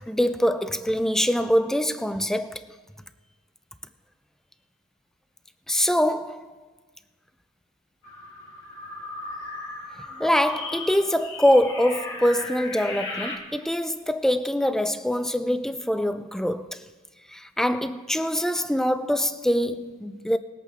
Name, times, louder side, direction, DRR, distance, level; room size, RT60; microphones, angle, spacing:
voice 1, 0.1-2.6 5.7-6.5 10.2-16.8 17.3-20.4, equal, ahead, 0.4 m, -24 dB
sound 1, 8.0-13.4, left 3 dB, 60° left, 1.9 m, -37 dB
20.5 x 8.4 x 3.5 m
head